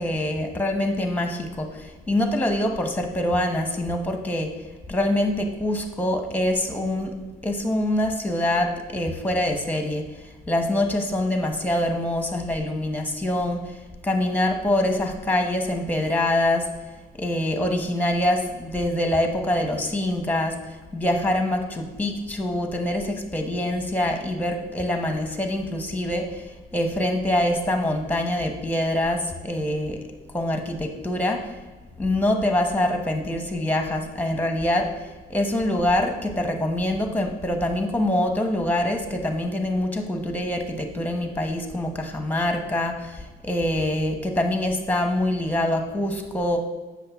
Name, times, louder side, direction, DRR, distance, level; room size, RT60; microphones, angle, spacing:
voice 1, 0.0-4.5 4.9-7.1 7.4-10.1 10.5-13.6 14.0-16.7 17.2-20.6 20.9-26.4 26.7-30.0 30.3-31.5 32.0-34.9 35.3-46.6, left 1 dB, 10° left, 4 dB, 1.1 m, -25 dB
7.6 x 6.2 x 3.6 m, 1.3 s
cardioid pair, 90°, 20 cm